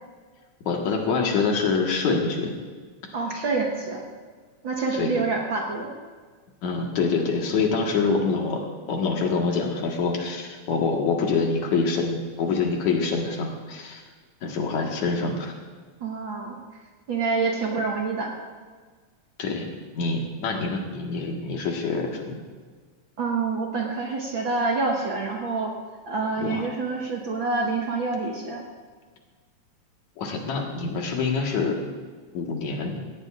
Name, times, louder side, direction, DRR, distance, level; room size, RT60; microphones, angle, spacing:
voice 1, 0.7-2.5 4.9-5.2 6.6-14.0 14.4-15.5 19.4-19.7 19.9-22.4 26.4-26.7 30.2-31.8 32.3-33.0, left 4 dB, 75° left, 1 dB, 2.9 m, -25 dB
voice 2, 3.1-4.0 4.6-5.9 16.0-16.6 17.1-18.3 23.2-25.7 26.1-28.6, right 3 dB, 50° right, -1 dB, 1.7 m, -27 dB
17.5 x 17.5 x 2.5 m, 1.5 s
omnidirectional pair, 3.4 m